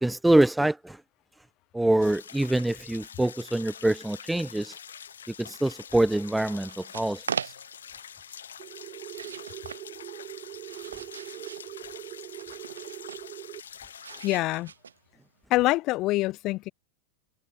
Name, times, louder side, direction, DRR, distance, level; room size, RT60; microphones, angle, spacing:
voice 1, 0.0-1.0 1.7-4.7 5.4-7.2, right 1 dB, 5° right, 0.5 m, -25 dB
sound 1, 2.0-14.3, left 8 dB, 65° left, 7.9 m, -46 dB
sound 2, 6.5-7.9 9.0-9.8 10.4-11.7 12.3-13.3 14.0-15.2, right 6 dB, 70° right, 4.6 m, -39 dB
sound 3, 8.6-13.6, right 17 dB, 35° right, 2.2 m, -42 dB
voice 2, 14.2-14.7 15.5-16.7, left 19 dB, 40° left, 0.8 m, -25 dB
figure-of-eight pair, 90°, 0 cm